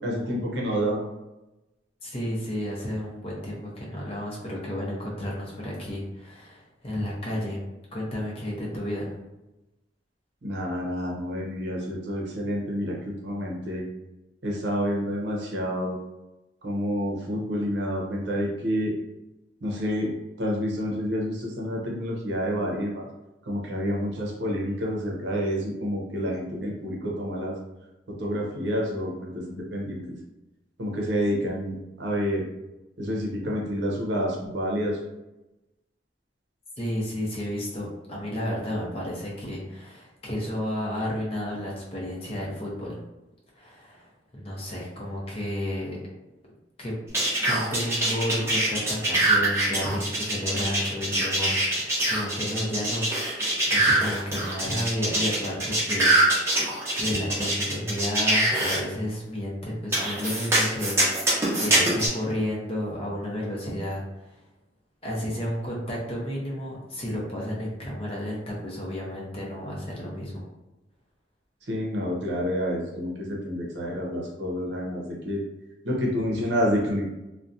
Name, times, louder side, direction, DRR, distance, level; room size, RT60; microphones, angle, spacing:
voice 1, 0.0-1.1 10.4-13.8 14.4-16.0 16.6-18.9 19.6-20.1 20.4-23.1 23.4-27.6 28.1-30.2 30.8-32.5 33.0-35.0 71.6-75.4 75.8-77.1, equal, 65° right, -2 dB, 0.6 m, -28 dB
voice 2, 2.0-7.6 7.9-9.2 36.8-43.0 43.6-44.1 44.3-46.0 46.8-46.9 47.4-53.1 53.7-56.5 56.9-61.3 61.6-64.4 65.0-70.4, left 1 dB, 30° left, -4 dB, 0.6 m, -32 dB
sound 1, 47.1-58.8 59.9-62.1, right 1 dB, 15° right, 0.6 m, -24 dB
2.5 x 2.1 x 2.5 m, 1.0 s
head